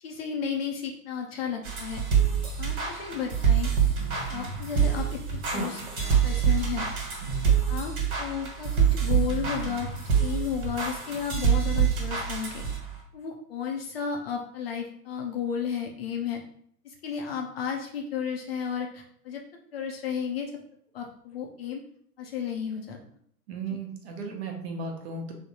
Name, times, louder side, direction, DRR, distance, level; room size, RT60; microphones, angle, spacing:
voice 1, 0.0-2.1 2.4-3.7 4.3-5.8 6.2-6.9 7.4-7.9 8.2-9.9 10.2-12.7 13.1-16.4 16.8-19.4 19.7-20.5 20.9-21.8 22.2-23.0, left 7 dB, 40° left, 2 dB, 0.4 m, -33 dB
sound 1, 1.6-13.0, right 7 dB, 65° right, 1.2 m, -26 dB
voice 2, 7.2-7.6 23.5-25.3, right 3 dB, 40° right, 2 dB, 0.7 m, -35 dB
3.3 x 2.0 x 2.7 m, 0.64 s
figure-of-eight pair, 110°, 47 cm